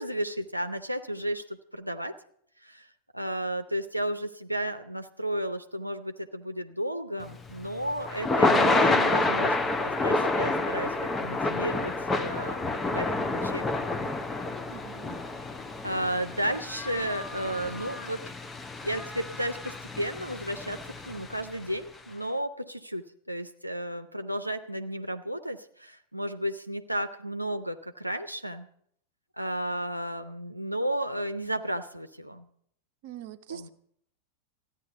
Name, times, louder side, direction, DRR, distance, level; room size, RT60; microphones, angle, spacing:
voice 1, 0.0-2.2 2.6-2.9 3.1-10.9 11.2-13.7 15.8-18.2 18.8-28.7 29.4-32.5 33.5-33.7, right 1 dB, 90° right, 0.6 m, -33 dB
Thunder / Rain, 7.3-21.5, left 2 dB, 15° left, 0.7 m, -29 dB
voice 2, 14.7-15.2 33.0-33.7, right 10 dB, 45° right, 0.7 m, -43 dB
14.0 x 9.7 x 6.8 m
figure-of-eight pair, 90°, 0 cm